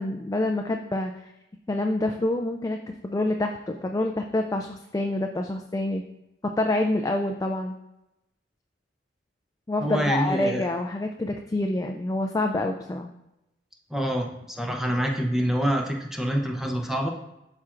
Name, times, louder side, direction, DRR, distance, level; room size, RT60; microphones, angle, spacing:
voice 1, 0.0-1.3 1.7-2.8 3.0-6.0 6.4-7.8 9.7-13.1, left 1 dB, 20° left, 4 dB, 0.3 m, -27 dB
voice 2, 9.8-10.6 13.9-17.1, equal, ahead, 2 dB, 0.7 m, -26 dB
12.0 x 4.3 x 2.5 m, 0.89 s
head